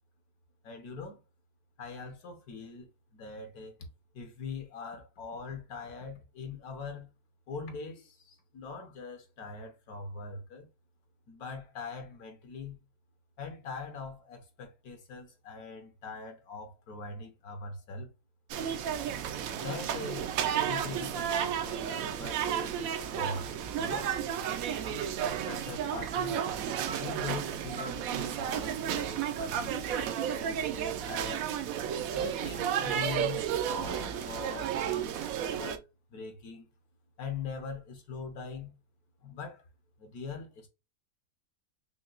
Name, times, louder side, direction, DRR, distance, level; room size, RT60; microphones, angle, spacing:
voice 1, 0.6-1.2 1.8-3.7 4.1-7.1 7.5-10.7 11.3-12.8 13.4-18.1 19.6-24.2 25.4-26.4 27.0-31.4 32.2-35.8 36.1-36.7 37.2-38.7 39.2-39.6 40.0-40.7, left 4 dB, 70° left, 1.4 m, -42 dB
sound 1, 18.5-35.8, right 9 dB, 70° right, 0.9 m, -32 dB
5.7 x 2.2 x 2.5 m
omnidirectional pair, 1.7 m